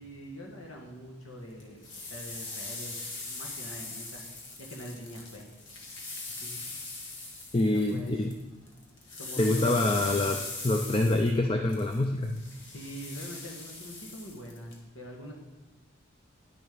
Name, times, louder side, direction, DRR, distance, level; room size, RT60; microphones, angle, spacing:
voice 1, 0.0-3.0 3.2-4.3 4.6-5.5 6.3-6.8 7.7-8.2 9.2-10.1 12.7-15.3, equal, 80° left, 0 dB, 1.7 m, -44 dB
sound 1, 1.6-8.4 8.7-14.8, left 3 dB, 60° left, 1.7 m, -41 dB
voice 2, 7.5-8.3 9.4-12.4, left 2 dB, 25° left, 5 dB, 0.4 m, -26 dB
10.5 x 6.8 x 5.1 m, 1.2 s
head